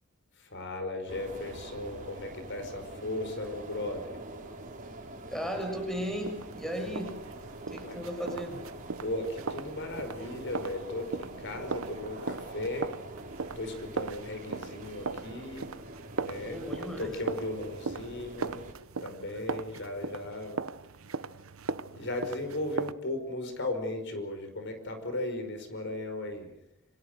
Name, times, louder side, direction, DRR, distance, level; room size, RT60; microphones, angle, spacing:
voice 1, 0.4-4.2 7.9-8.0 9.0-12.9 13.6-15.7 16.2-16.6 17.0-18.6 19.0-20.6 21.9-26.6, left 1 dB, 60° left, 7 dB, 5.2 m, -36 dB
sound 1, 1.1-18.7, right 2 dB, 40° right, 4.5 m, -45 dB
voice 2, 5.3-7.1 7.7-8.6 16.4-17.1, equal, ahead, 4 dB, 6.6 m, -35 dB
sound 2, 6.3-22.9, right 4 dB, 80° right, 1.0 m, -39 dB
28.5 x 26.5 x 6.6 m, 0.80 s
head